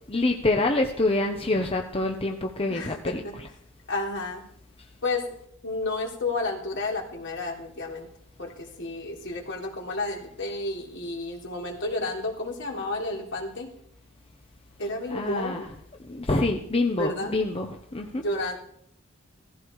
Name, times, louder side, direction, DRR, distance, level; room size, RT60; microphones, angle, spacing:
voice 1, 0.1-3.5 15.1-15.6 16.0-18.2, left 2 dB, 30° left, 3 dB, 1.0 m, -26 dB
voice 2, 2.7-3.3 3.9-4.4 5.0-5.4 5.6-8.1 8.4-13.7 14.8-15.7 17.0-17.4 18.2-18.6, left 2 dB, 65° left, 0 dB, 3.7 m, -31 dB
17.0 x 14.5 x 4.8 m, 0.69 s
head